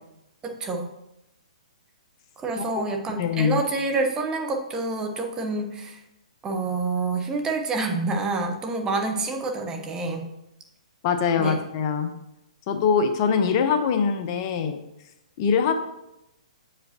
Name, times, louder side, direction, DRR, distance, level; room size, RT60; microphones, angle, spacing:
voice 1, 0.4-0.9 2.4-6.0 6.4-10.3 11.4-11.6, right 3 dB, 15° right, 3 dB, 1.0 m, -27 dB
voice 2, 3.2-3.6 11.0-12.1 12.7-14.8 15.4-15.7, left 6 dB, 40° left, 7 dB, 0.8 m, -23 dB
7.7 x 5.0 x 2.8 m, 0.87 s
hypercardioid pair, 130°, 4 cm